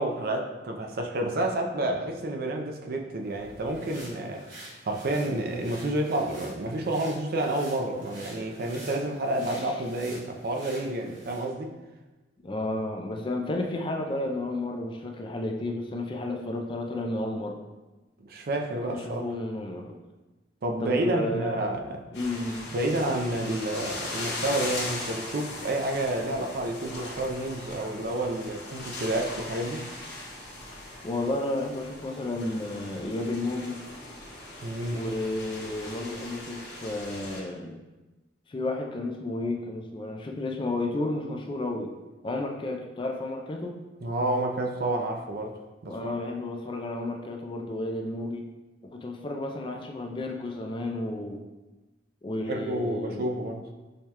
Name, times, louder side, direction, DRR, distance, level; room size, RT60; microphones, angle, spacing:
voice 1, 0.0-4.5 4.9-11.7 18.2-19.2 20.6-22.0 22.7-29.8 34.6-35.0 44.0-45.5 45.8-46.1 52.5-53.6, right 1 dB, 55° right, 3 dB, 0.5 m, -29 dB
sound 1, 3.3-11.5, right 1 dB, 80° right, 1.4 m, -48 dB
voice 2, 9.4-9.8 12.4-17.6 18.9-20.0 20.8-21.7 22.1-22.7 31.0-33.8 34.9-37.8 38.5-41.9 42.2-43.8 45.9-48.4 48.9-51.4 52.2-53.3, left 2 dB, 25° left, 2 dB, 0.3 m, -32 dB
sound 2, 22.1-37.4, left 2 dB, 70° left, 1.2 m, -39 dB
6.4 x 2.2 x 2.8 m, 1.1 s
head